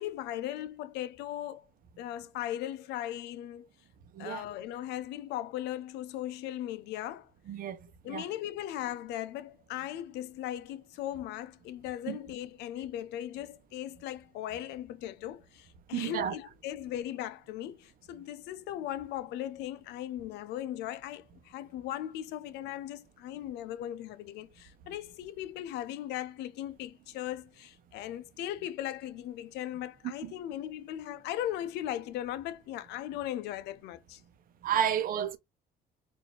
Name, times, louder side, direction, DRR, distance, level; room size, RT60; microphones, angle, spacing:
voice 1, 0.0-1.7 2.0-3.7 4.2-7.3 8.0-34.2, left 12 dB, 85° left, 0.5 m, -38 dB
voice 2, 4.1-4.4 7.5-7.8 8.1-8.2 12.1-12.2 15.9-16.3 30.2-30.3 34.6-35.4, right 9 dB, 55° right, 0.8 m, -31 dB
4.1 x 2.7 x 3.0 m
cardioid pair, 110°, 17 cm